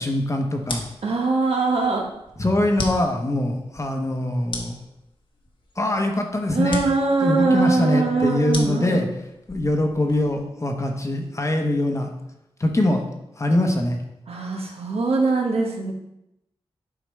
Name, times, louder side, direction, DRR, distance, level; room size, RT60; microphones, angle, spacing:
voice 1, 0.0-0.8 2.4-4.8 5.8-7.0 7.2-9.1 9.5-12.1 12.6-13.0 13.4-14.0, left 1 dB, 30° left, 3 dB, 1.0 m, -23 dB
sound 1, 0.6-10.5, left 2 dB, 55° left, 1.2 m, -37 dB
voice 2, 1.0-2.1 6.5-9.0 14.3-15.9, right 3 dB, 70° right, 0 dB, 1.3 m, -22 dB
8.2 x 4.9 x 3.3 m, 0.86 s
wide cardioid pair, 80°, 11 cm